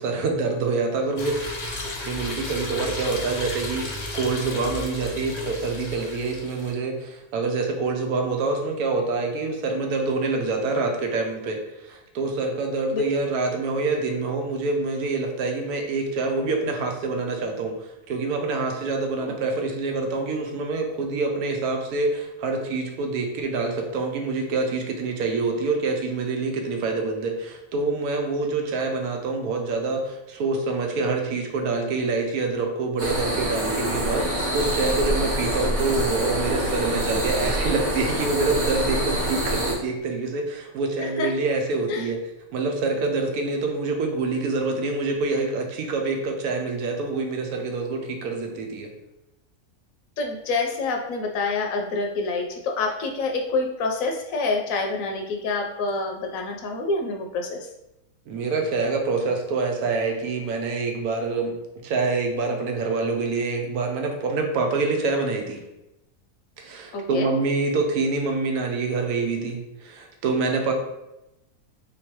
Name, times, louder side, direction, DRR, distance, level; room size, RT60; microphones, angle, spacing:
voice 1, 0.0-1.5 2.0-34.3 34.5-42.2 42.5-48.9 58.3-61.5 61.8-65.6 66.6-70.7, right 3 dB, 85° right, 3 dB, 1.2 m, -26 dB
sound 1, 1.2-6.7, left 2 dB, 50° left, 0.5 m, -33 dB
sound 2, 33.0-39.7, equal, 40° right, 0.8 m, -26 dB
voice 2, 50.2-57.6 66.9-67.3, left 3 dB, 75° left, 2 dB, 0.9 m, -27 dB
3.6 x 3.1 x 2.9 m, 0.91 s
omnidirectional pair, 1.5 m